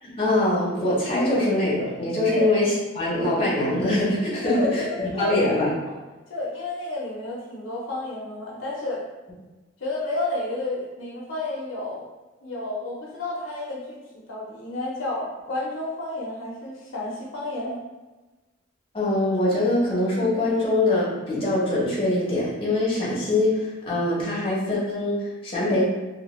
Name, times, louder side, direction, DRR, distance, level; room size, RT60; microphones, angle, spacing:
voice 1, 0.0-5.7 18.9-25.8, left 1 dB, 25° left, -7 dB, 0.7 m, -23 dB
voice 2, 4.4-5.5 5.9-6.0 6.3-9.0 9.8-12.1 12.4-14.0 14.3-17.8, left 2 dB, 65° left, -4 dB, 0.5 m, -31 dB
2.2 x 2.2 x 3.0 m, 1.2 s
head